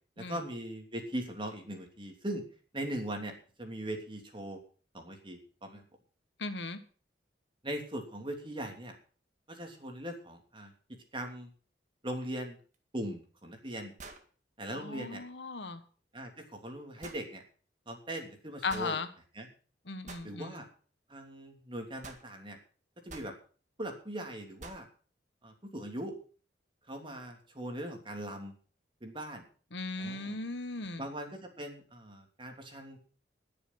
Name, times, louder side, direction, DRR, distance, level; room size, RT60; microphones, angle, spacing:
voice 1, 0.2-2.4 2.7-4.6 4.9-5.8 7.6-9.0 9.5-10.7 11.1-11.5 12.0-12.6 12.9-13.9 14.6-15.2 16.1-17.4 17.9-19.0 19.3-19.5 20.2-20.7 21.1-22.6 23.0-23.3 23.8-24.9 25.4-26.2 26.9-28.5 29.0-29.4 30.0-30.4 31.0-33.0, right 1 dB, 30° right, 4 dB, 3.1 m, -40 dB
voice 2, 6.4-6.8 14.7-15.8 18.6-19.1 19.9-20.5 29.7-31.1, left 3 dB, 85° left, 10 dB, 1.5 m, -37 dB
sound 1, 12.7-12.8 14.0-14.3 17.0-17.2 18.7-18.9 20.1-20.3 22.0-22.3 23.1-23.3 24.6-24.9, right 3 dB, 45° right, 1.9 m, -47 dB
20.5 x 7.1 x 6.0 m, 0.40 s
head